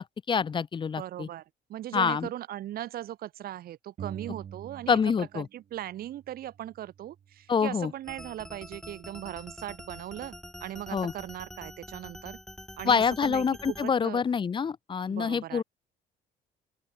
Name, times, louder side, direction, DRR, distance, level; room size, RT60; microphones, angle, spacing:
voice 1, 0.0-1.3 1.9-2.3 4.9-5.5 7.5-7.9 10.9-11.1 12.8-15.6, left 6 dB, 30° left, 0.7 m, -26 dB
voice 2, 1.0-10.3 10.6-12.4 12.8-14.2 15.1-15.6, right 13 dB, 65° right, 1.7 m, -39 dB
sound 1, 4.0-5.5 5.7-7.5, right 8 dB, 45° right, 3.7 m, -45 dB
sound 2, 8.0-13.9, equal, ahead, 1.8 m, -46 dB
open air
cardioid pair, 110°, 17 cm